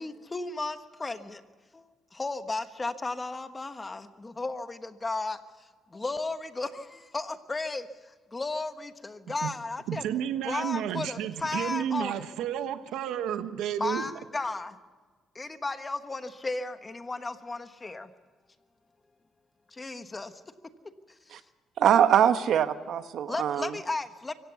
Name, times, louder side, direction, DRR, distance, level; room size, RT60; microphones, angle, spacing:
voice 1, 0.0-1.4 1.7-10.0 10.5-12.2 13.8-14.8 15.3-18.1 19.7-20.4 23.3-24.3, left 3 dB, 20° left, 9 dB, 1.4 m, -34 dB
voice 2, 9.9-14.0, right 10 dB, 90° right, 9 dB, 1.3 m, -31 dB
voice 3, 21.8-23.7, right 9 dB, 70° right, 10 dB, 1.2 m, -23 dB
25.0 x 16.0 x 7.1 m, 1.4 s
cardioid pair, 110°, 0 cm